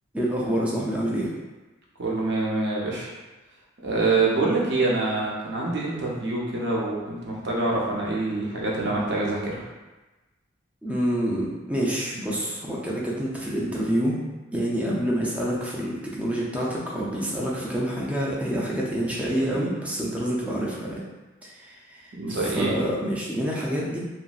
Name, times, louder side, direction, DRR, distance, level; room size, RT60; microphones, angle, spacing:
voice 1, 0.1-1.3 10.8-14.2 14.5-21.0 21.4-22.0 22.3-24.0, equal, 5° right, -5 dB, 0.4 m, -27 dB
voice 2, 2.0-3.1 3.8-9.6 22.2-22.7, right 3 dB, 60° right, -4 dB, 0.7 m, -25 dB
2.9 x 2.5 x 2.3 m, 1.2 s
head